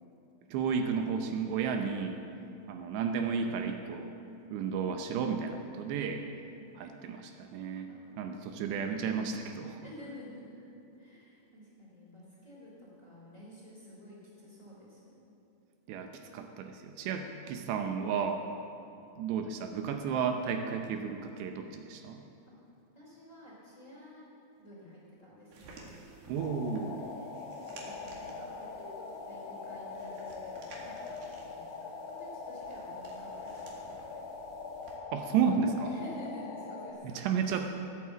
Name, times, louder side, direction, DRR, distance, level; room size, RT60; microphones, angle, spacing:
voice 1, 0.5-2.2 2.7-4.1 4.5-6.3 6.8-9.9 15.9-18.5 19.2-22.2 26.3-27.0 35.1-35.9 37.0-37.7, right 6 dB, 80° right, 5 dB, 2.8 m, -32 dB
voice 2, 2.3-2.6 6.3-6.7 7.9-8.8 9.8-15.2 22.5-22.6 22.9-24.3 24.6-25.9 26.9-31.2 31.4-34.2 35.8-37.2, left 1 dB, 20° left, -6 dB, 2.9 m, -51 dB
sound 1, 25.5-35.0, right 3 dB, 60° right, 3.6 m, -54 dB
Empty Station, 26.4-36.9, left 4 dB, 70° left, 3.5 m, -43 dB
14.5 x 9.4 x 7.4 m, 2.8 s
omnidirectional pair, 5.1 m